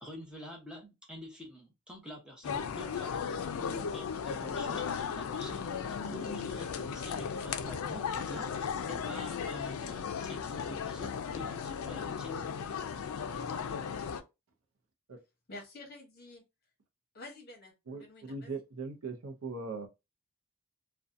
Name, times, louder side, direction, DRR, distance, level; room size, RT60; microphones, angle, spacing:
voice 1, 0.0-12.8, equal, 5° right, 0.7 m, -47 dB
sound 1, 2.4-14.2, left 6 dB, 75° left, 0.4 m, -36 dB
voice 2, 15.5-16.4 17.1-17.7 18.0-18.5, left 2 dB, 45° left, 0.9 m, -48 dB
voice 3, 17.9-19.9, right 3 dB, 75° right, 0.6 m, -40 dB
2.6 x 2.2 x 2.4 m
head